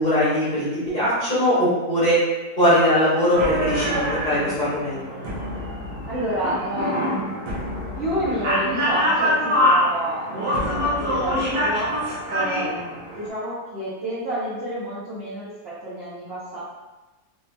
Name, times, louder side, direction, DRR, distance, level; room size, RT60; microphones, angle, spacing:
voice 1, 0.0-2.2 2.6-5.0, equal, 30° left, -11 dB, 1.1 m, -20 dB
sound 1, 3.3-13.3, equal, 75° right, 1.3 m, -25 dB
voice 2, 6.1-7.3 7.9-11.9 12.3-16.6, right 1 dB, 55° right, -10 dB, 0.7 m, -29 dB
3.3 x 2.6 x 2.2 m, 1.1 s
omnidirectional pair, 1.8 m